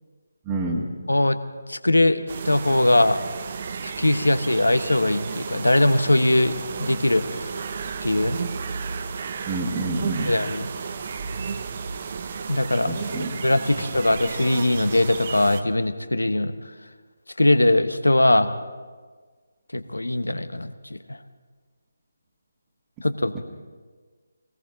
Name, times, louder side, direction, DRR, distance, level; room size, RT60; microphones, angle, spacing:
voice 1, 0.4-0.9 9.4-10.3 12.9-13.3, right 2 dB, 15° right, -5 dB, 1.7 m, -27 dB
voice 2, 1.7-3.2 3.8-7.5 8.0-8.4 10.2-10.7 12.5-12.9 13.2-16.5 17.4-18.6 19.7-21.2 23.0-23.3, left 1 dB, 80° left, 12 dB, 0.9 m, -21 dB
sound 1, 2.3-15.6, right 5 dB, 40° right, 0.8 m, -33 dB
20.0 x 18.5 x 3.9 m, 1.5 s
figure-of-eight pair, 150°, 0 cm